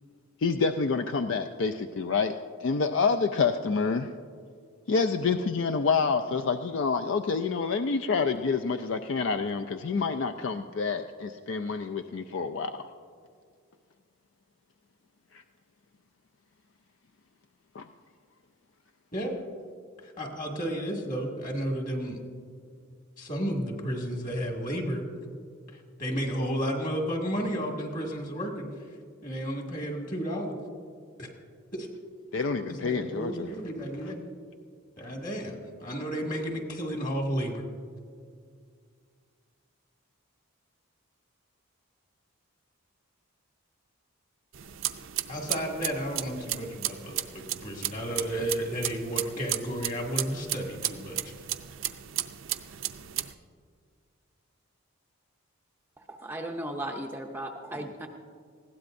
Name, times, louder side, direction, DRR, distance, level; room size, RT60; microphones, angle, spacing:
voice 1, 0.4-2.3 2.6-4.1 4.9-12.7 17.8-17.9 32.3-33.5, left 5 dB, 55° left, 6 dB, 0.4 m, -27 dB
voice 2, 20.0-22.2 23.2-25.0 25.7-28.7 29.2-30.5 31.2-31.3 31.7-31.9 32.7-34.2 35.0-37.6 45.3-51.3, equal, 35° left, 0 dB, 2.0 m, -32 dB
sound 1, 44.5-53.3, right 13 dB, 60° right, 0.5 m, -34 dB
voice 3, 56.1-58.1, right 1 dB, 10° right, 2 dB, 0.5 m, -36 dB
20.0 x 16.0 x 2.6 m, 2.1 s
head